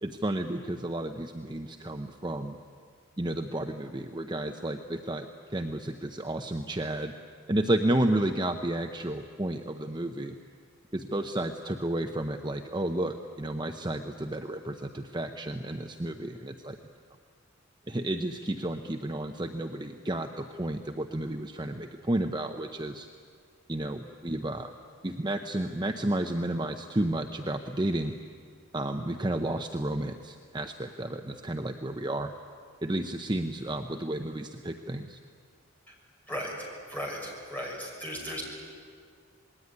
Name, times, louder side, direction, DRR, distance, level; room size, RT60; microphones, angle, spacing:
voice 1, 0.0-2.6 3.2-7.1 7.5-10.4 10.9-16.8 17.9-23.1 23.7-24.7 25.0-28.1 28.7-32.3 32.8-35.2, right 1 dB, 20° right, 5 dB, 0.8 m, -32 dB
voice 2, 36.9-38.4, equal, 10° left, -2 dB, 6.0 m, -36 dB
27.0 x 20.5 x 9.6 m, 2.1 s
head